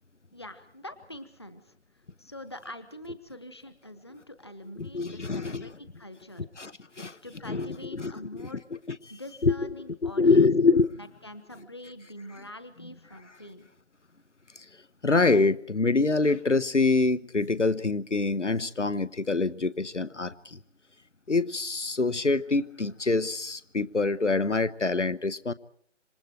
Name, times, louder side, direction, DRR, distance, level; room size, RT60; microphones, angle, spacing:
voice 1, 0.3-1.7 2.2-6.5 7.0-8.6 9.1-10.5 11.2-13.7, left 1 dB, 20° left, 0.9 m, -44 dB
voice 2, 4.8-5.8 6.4-7.1 7.4-8.5 8.9-9.0 9.4-10.9 12.8-12.9 14.5-14.7 15.0-20.6 21.3-25.5, left 3 dB, 85° left, 1.2 m, -25 dB
27.0 x 24.5 x 4.6 m
figure-of-eight pair, 165°, 35 cm